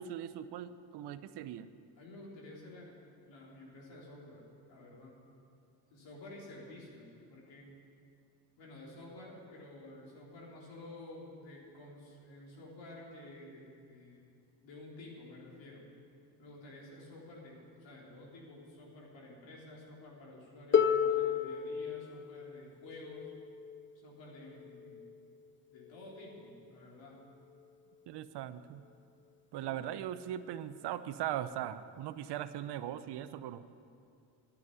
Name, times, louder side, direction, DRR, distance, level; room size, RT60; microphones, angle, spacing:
voice 1, 0.0-1.7 28.1-28.8 29.5-33.6, right 11 dB, 60° right, 13 dB, 0.8 m, -39 dB
voice 2, 2.0-5.1 5.9-7.7 8.6-14.2 14.6-15.8 16.4-23.3 23.9-25.1 25.7-27.2 29.6-30.0, left 1 dB, 65° left, -4 dB, 4.0 m, -51 dB
Harp, 20.7-26.5 27.6-27.7, left 8 dB, 25° left, 0.8 m, -34 dB
11.0 x 9.8 x 9.4 m, 2.5 s
supercardioid pair, 75°, 47 cm